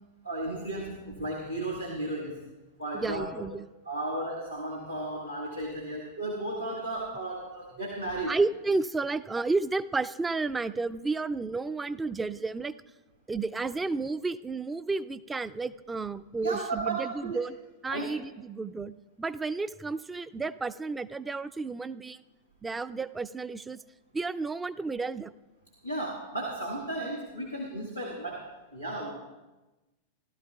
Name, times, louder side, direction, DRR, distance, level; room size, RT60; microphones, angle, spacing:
voice 1, 0.2-2.4 2.8-3.2 3.8-8.4 16.4-17.4 17.9-18.1 25.8-29.1, right 2 dB, 85° right, -3 dB, 1.5 m, -34 dB
voice 2, 2.9-3.7 8.3-12.7 13.3-17.6 17.8-22.2 22.6-23.8 24.1-25.3, right 3 dB, 10° right, 15 dB, 0.3 m, -32 dB
17.0 x 12.5 x 2.3 m, 1.1 s
figure-of-eight pair, 90°, 0 cm